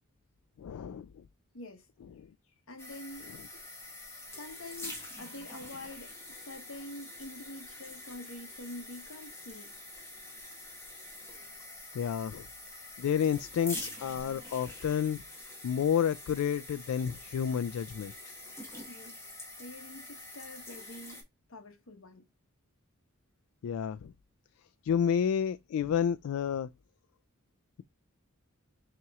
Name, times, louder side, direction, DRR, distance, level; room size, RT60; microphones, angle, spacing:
voice 1, 0.6-1.1 2.2-2.3 11.9-12.5 13.0-15.2 15.6-18.3 23.6-24.1 24.8-26.7, left 8 dB, 80° left, 0.3 m, -30 dB
voice 2, 1.5-1.9 2.7-3.3 4.4-9.8 18.9-19.3 19.6-21.2 21.5-22.2, left 1 dB, 65° left, 1.1 m, -46 dB
sound 1, 2.8-21.2, left 2 dB, 10° left, 1.3 m, -46 dB
5.7 x 3.0 x 2.3 m
head